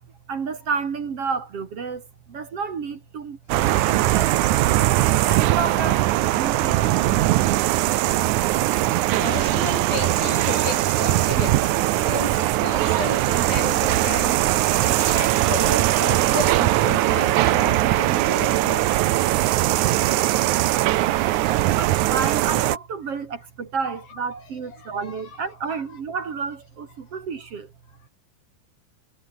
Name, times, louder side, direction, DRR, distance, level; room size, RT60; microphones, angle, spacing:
voice 1, 0.3-2.0 2.3-3.4 3.6-4.3 4.6-4.9 5.3-6.0 6.3-6.7 21.7-26.9 27.1-27.6, right 5 dB, 45° right, 2.8 m, -30 dB
sound 1, 3.5-22.8, right 15 dB, 70° right, 2.0 m, -20 dB
voice 2, 9.2-18.9 19.5-19.6 24.8-25.2, left 5 dB, 85° left, 6.9 m, -33 dB
omnidirectional pair, 4.1 m